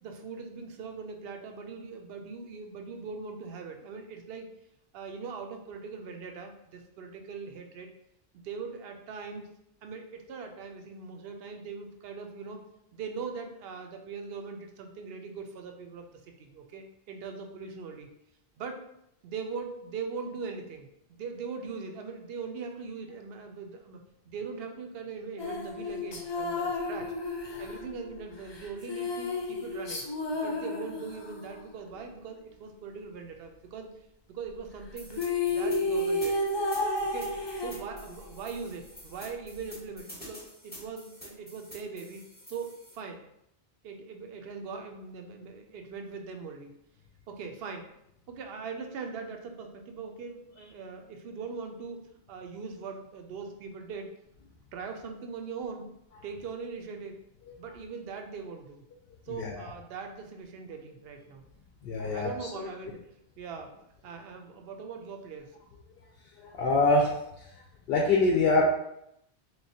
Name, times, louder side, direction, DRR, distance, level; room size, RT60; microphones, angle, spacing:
voice 1, 0.0-4.5 4.9-7.9 8.3-9.5 9.8-12.6 12.9-18.1 18.6-18.8 19.2-24.0 24.3-27.1 27.6-30.0 30.3-33.9 34.3-36.4 37.1-43.2 43.8-46.8 47.3-47.9 48.3-52.0 52.3-54.1 54.7-55.9 56.2-57.2 57.6-58.9 59.2-61.4 62.1-63.7 64.0-65.6, right 5 dB, 70° right, 4 dB, 0.7 m, -41 dB
sound 1, 25.4-31.5 34.8-34.9 35.1-38.3, left 2 dB, 45° left, 0.3 m, -32 dB
sound 2, 35.0-43.0, left 1 dB, 10° left, 1.0 m, -48 dB
voice 2, 61.8-62.7 66.4-67.2 67.9-68.6, left 3 dB, 70° left, -1 dB, 0.8 m, -25 dB
3.5 x 3.0 x 2.7 m, 0.79 s
omnidirectional pair, 1.1 m